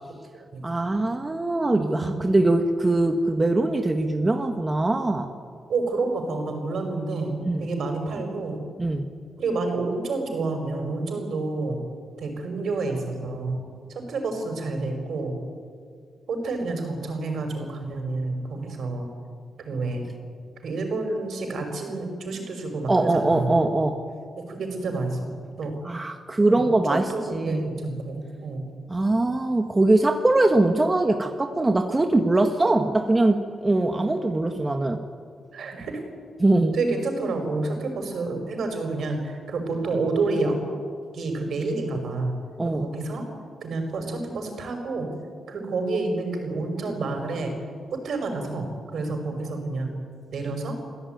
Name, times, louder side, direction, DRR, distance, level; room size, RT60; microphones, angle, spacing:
voice 1, 0.6-5.3 7.4-7.7 8.8-9.1 22.9-24.0 25.8-27.7 28.9-35.0 36.4-36.7 42.6-42.9, right 2 dB, 20° right, 5 dB, 1.6 m, -22 dB
voice 2, 1.8-2.2 5.7-8.6 9.4-11.8 12.2-13.6 13.9-15.3 16.3-19.1 19.6-20.1 20.6-23.5 24.4-25.7 26.4-28.7 33.9-34.1 35.5-36.0 36.7-40.6 41.1-42.3 42.7-43.2 43.6-45.1 45.5-47.5 47.9-49.9 50.3-50.8, right 3 dB, 70° right, 4 dB, 5.7 m, -29 dB
27.0 x 16.5 x 9.4 m, 2.1 s
cardioid pair, 85°, 0 cm